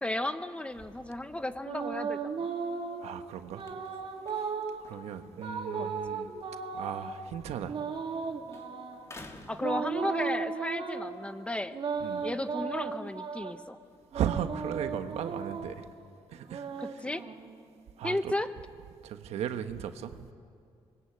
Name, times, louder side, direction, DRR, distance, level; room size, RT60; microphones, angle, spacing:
voice 1, 0.0-2.5 5.8-5.9 9.5-11.8 12.2-13.8 16.8-17.2 18.0-18.5, left 1 dB, 10° left, 10 dB, 1.0 m, -34 dB
sound 1, 0.8-3.1 3.5-4.8 5.4-7.1 7.7-9.0 9.6-11.1 11.7-13.6 14.1-15.8 16.3-17.7, right 5 dB, 50° right, 3.1 m, -36 dB
sound 2, 2.6-8.2 8.5-10.5 11.0-14.1, left 2 dB, 25° left, 2.5 m, -56 dB
voice 2, 3.0-3.6 4.4-4.5 4.9-6.3 6.7-7.8 12.0-12.3 14.1-15.9 16.3-16.8 18.0-18.3 19.0-20.2, right 9 dB, 80° right, 8 dB, 1.3 m, -36 dB
25.5 x 21.5 x 8.5 m, 2.3 s
cardioid pair, 95°, 11 cm